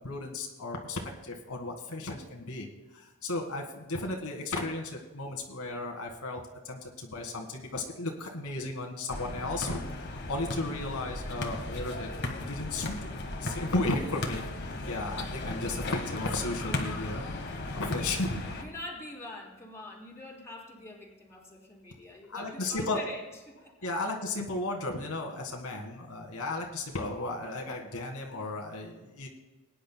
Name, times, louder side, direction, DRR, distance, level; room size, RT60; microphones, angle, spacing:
voice 1, 0.0-2.7 2.9-12.1 12.4-13.1 13.4-18.4 22.3-23.0 23.8-29.3, left 2 dB, 80° left, 1 dB, 1.7 m, -35 dB
sound 1, 9.1-18.6, left 2 dB, 50° left, 1.5 m, -36 dB
voice 2, 18.6-23.9 27.1-27.2, left 2 dB, 15° left, -4 dB, 3.0 m, -44 dB
21.0 x 10.0 x 2.2 m, 1.2 s
head